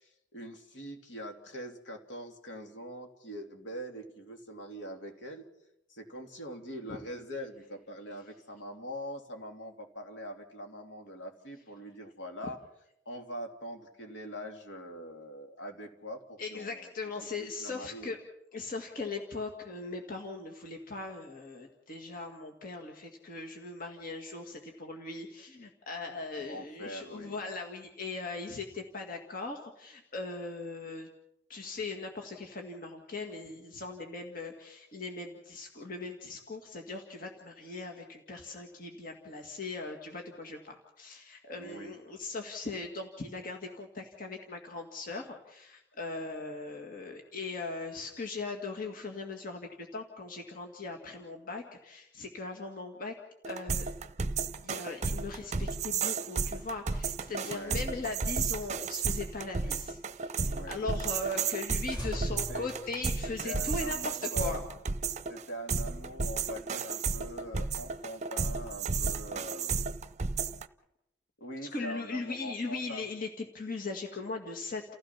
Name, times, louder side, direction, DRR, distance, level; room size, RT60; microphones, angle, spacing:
voice 1, 0.0-5.5 5.9-12.6 13.0-16.9 17.4-18.1 26.4-27.4 41.6-41.9 57.4-57.8 60.4-61.5 62.1-62.7 63.4-64.7 65.3-69.9 71.4-73.0, equal, 70° left, 3 dB, 3.1 m, -43 dB
voice 2, 16.4-18.2 18.5-31.1 31.5-53.1 53.5-53.9 54.6-64.6 71.7-74.9, left 3 dB, 50° left, 2 dB, 2.1 m, -39 dB
sound 1, 53.4-70.6, right 5 dB, 40° right, 0.7 m, -33 dB
sound 2, 57.6-60.4 60.7-60.8 61.2-61.3 61.5-61.7 61.9-63.6, equal, 25° left, 4.2 m, -43 dB
29.5 x 16.0 x 5.9 m, 0.80 s
head